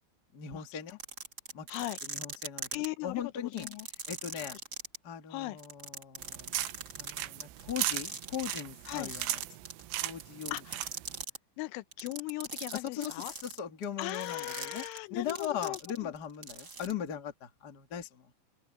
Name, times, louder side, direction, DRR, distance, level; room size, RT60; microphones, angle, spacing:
voice 1, 0.3-1.0 1.5-1.7 2.0-3.7 4.1-4.6 5.0-6.5 7.0-9.4 10.0-10.5 12.7-14.8 15.1-18.3, left 9 dB, 55° left, 1.0 m, -39 dB
sound 1, 0.9-2.8 3.5-5.0 5.6-8.6 8.8-9.8 10.2-11.4 11.9-16.2 16.4-16.9, right 5 dB, 30° right, 2.0 m, -40 dB
voice 2, 2.7-3.9 5.3-5.6 8.9-9.1 10.5-10.8 11.6-13.3 14.0-16.1, left 19 dB, 85° left, 3.3 m, -38 dB
sound 2, 6.2-11.2, right 15 dB, 80° right, 3.5 m, -38 dB
open air
omnidirectional pair, 5.5 m